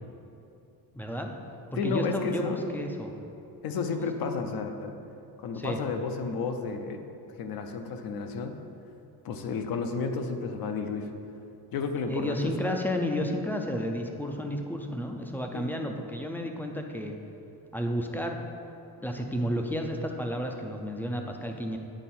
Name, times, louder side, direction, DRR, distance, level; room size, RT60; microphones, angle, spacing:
voice 1, 0.9-1.3 1.7-3.1 3.9-4.1 5.5-5.8 12.0-17.1 17.7-18.4 19.0-21.8, equal, 5° left, 3 dB, 0.4 m, -32 dB
voice 2, 1.8-2.6 3.6-4.9 5.4-7.0 7.3-8.5 9.2-11.1 11.7-12.5 15.5-15.8, left 5 dB, 60° left, 6 dB, 0.7 m, -32 dB
9.0 x 4.6 x 4.3 m, 2.8 s
cardioid pair, 140°, 40 cm